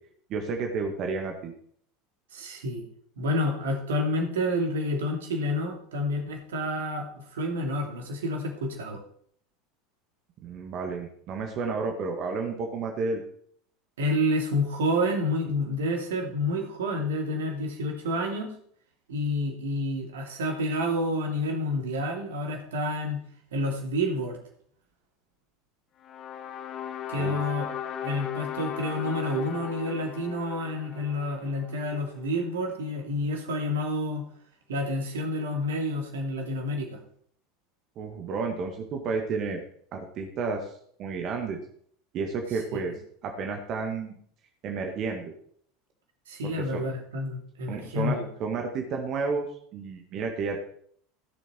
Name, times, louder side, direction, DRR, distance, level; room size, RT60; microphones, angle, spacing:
voice 1, 0.3-1.5 10.4-13.2 27.1-27.4 38.0-39.6 39.9-40.7 41.0-41.6 42.1-42.9 43.2-44.2 44.6-45.2 46.4-46.8 47.7-49.5 49.7-50.6, right 4 dB, 40° right, 3 dB, 1.9 m, -31 dB
voice 2, 2.3-2.8 3.2-9.0 14.0-18.5 19.1-23.2 23.5-24.4 27.1-27.7 28.0-34.2 34.7-37.0 42.7-42.8 46.3-48.3, left 1 dB, 65° right, 2 dB, 2.7 m, -29 dB
sound 1, 26.0-32.2, left 9 dB, 35° left, 0.8 m, -37 dB
16.5 x 7.1 x 4.6 m, 0.62 s
figure-of-eight pair, 75°, 0 cm